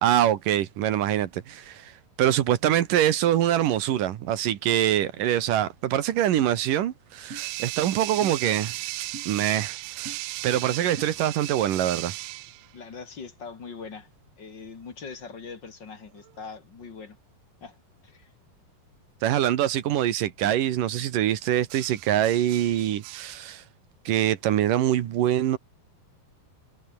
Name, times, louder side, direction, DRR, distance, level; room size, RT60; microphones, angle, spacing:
voice 1, 0.0-8.8 9.3-12.1 19.2-23.6 24.1-25.6, right 11 dB, 65° right, 2.8 m, -24 dB
sound 1, 7.3-7.4 8.2-8.4 9.1-9.3 10.1-10.2 11.0-11.1, right 3 dB, 40° right, 7.3 m, -40 dB
sound 2, 7.3-12.7 16.2-16.5 21.7-23.3, right 20 dB, 90° right, 2.0 m, -36 dB
voice 2, 12.7-14.1 14.4-17.2 17.6-17.8 18.0-18.3, left 5 dB, 35° left, 2.3 m, -41 dB
omnidirectional pair, 4.5 m